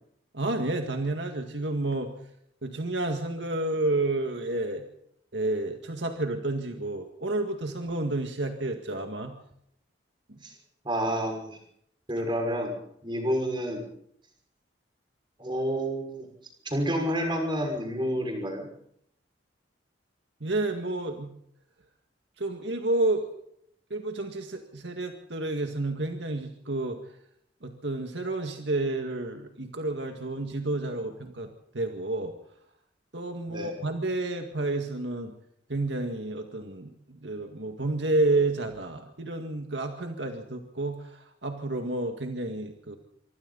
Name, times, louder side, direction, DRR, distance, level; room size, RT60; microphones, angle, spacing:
voice 1, 0.3-2.1 2.6-4.8 5.3-9.3 10.3-10.4 20.4-21.3 22.4-23.3 23.9-27.0 27.6-31.5 31.7-32.3 33.1-35.3 35.7-43.0, right 2 dB, 70° right, 4 dB, 2.1 m, -30 dB
voice 2, 10.8-11.6 12.1-13.8 15.4-16.3 16.6-18.7 33.5-33.7, equal, 25° right, 3 dB, 5.9 m, -29 dB
25.5 x 24.5 x 4.2 m, 0.70 s
head